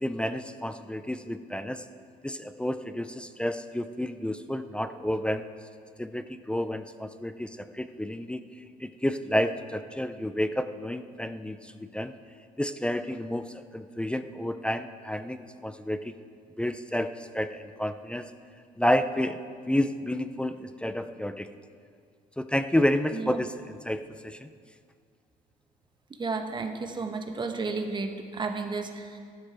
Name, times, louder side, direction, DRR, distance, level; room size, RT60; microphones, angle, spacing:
voice 1, 0.0-1.9 2.2-5.4 6.0-8.4 8.8-12.1 12.6-16.1 16.6-18.3 18.8-19.4 19.7-21.5 22.4-24.5, left 1 dB, 5° left, 11 dB, 0.4 m, -30 dB
voice 2, 26.2-29.2, right 4 dB, 25° right, 5 dB, 1.0 m, -32 dB
14.5 x 12.0 x 3.4 m, 2.1 s
cardioid pair, 110°, 17 cm